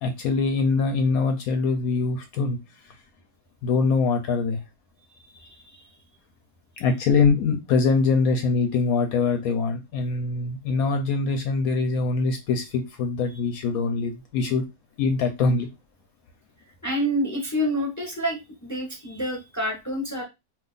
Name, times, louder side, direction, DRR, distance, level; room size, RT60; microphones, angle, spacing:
voice 1, 0.0-2.6 3.6-4.6 6.8-14.6 15.0-15.7, left 4 dB, 75° left, 6 dB, 1.0 m, -23 dB
voice 2, 5.3-5.9 16.8-20.2, equal, 20° left, 0 dB, 0.4 m, -28 dB
2.6 x 2.4 x 3.8 m, 0.23 s
omnidirectional pair, 1.6 m